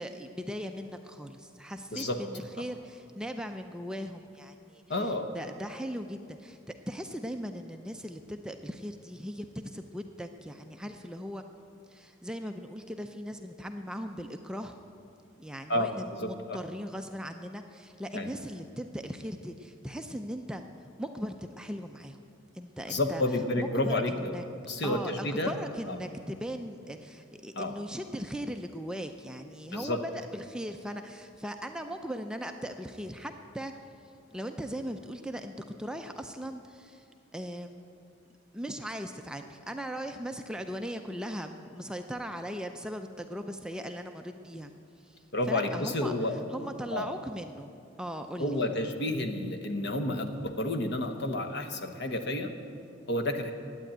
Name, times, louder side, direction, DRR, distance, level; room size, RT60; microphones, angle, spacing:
voice 1, 0.0-6.6 6.9-11.4 11.9-14.8 15.4-20.6 21.0-22.2 22.5-23.2 23.6-24.4 24.8-33.7 34.3-35.5 35.8-37.0 37.3-37.7 38.5-44.7 45.0-45.2 45.5-46.1 46.5-47.7 48.0-48.6, equal, 5° right, 5 dB, 0.4 m, -39 dB
voice 2, 4.9-5.3 15.7-16.6 18.1-18.3 22.9-24.4 24.7-25.5 25.9-26.0 27.6-27.7 29.7-30.0 45.3-46.4 46.9-47.2 48.4-52.5 53.1-53.5, left 1 dB, 55° left, 6 dB, 1.0 m, -30 dB
12.0 x 9.0 x 8.6 m, 2.5 s
head